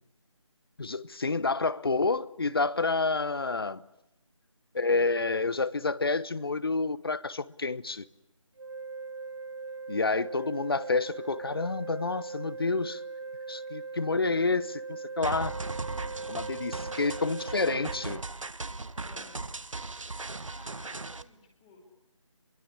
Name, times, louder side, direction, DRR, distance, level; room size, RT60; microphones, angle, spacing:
voice 1, 0.8-3.8 4.7-8.1 9.9-13.0 13.5-15.6 16.3-18.2, left 3 dB, 45° left, 0.9 m, -29 dB
sound 1, 8.6-18.2, right 4 dB, 50° right, 2.7 m, -40 dB
sound 2, 15.2-21.2, right 3 dB, 70° right, 1.4 m, -38 dB
voice 2, 16.7-17.3 19.0-19.5 20.1-21.8, left 3 dB, 15° left, 3.1 m, -55 dB
26.0 x 22.5 x 9.8 m
figure-of-eight pair, 170°, 17 cm